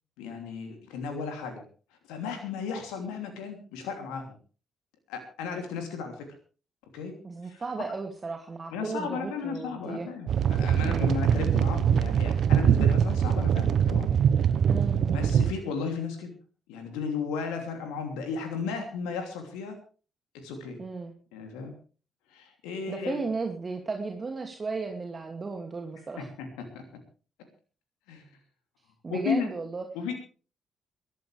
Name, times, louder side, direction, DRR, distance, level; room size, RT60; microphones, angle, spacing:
voice 1, 0.2-1.6 2.1-4.4 5.1-6.3 6.9-7.1 7.4-7.6 8.7-14.6 15.1-16.3 16.7-19.8 20.3-20.8 21.3-21.7 22.3-23.2 26.2-26.9 28.1-28.2 29.1-29.5 29.9-30.1, left 5 dB, 75° left, 5 dB, 3.0 m, -34 dB
voice 2, 7.2-10.1 10.8-11.1 14.7-15.0 20.8-21.1 22.9-26.3 29.0-29.8, right 4 dB, 35° right, 4 dB, 2.5 m, -35 dB
sound 1, 10.3-15.5, right 8 dB, 60° right, 1.1 m, -23 dB
22.5 x 13.5 x 3.4 m, 0.38 s
figure-of-eight pair, 40°, 0 cm